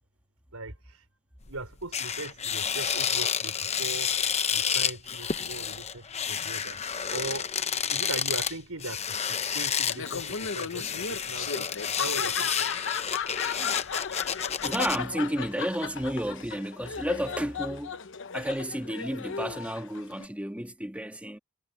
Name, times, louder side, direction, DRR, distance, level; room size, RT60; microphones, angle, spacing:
voice 1, 0.5-1.0 1.5-4.1 4.5-6.8 7.1-7.5 7.9-12.7, right 2 dB, 80° right, 5.5 m, -39 dB
sound 1, 1.4-1.6 1.9-15.0, left 7 dB, 30° left, 0.9 m, -30 dB
Laughter, 9.9-20.3, left 6 dB, 60° left, 1.0 m, -36 dB
voice 2, 14.3-17.9 18.3-21.4, right 1 dB, 5° right, 1.8 m, -32 dB
head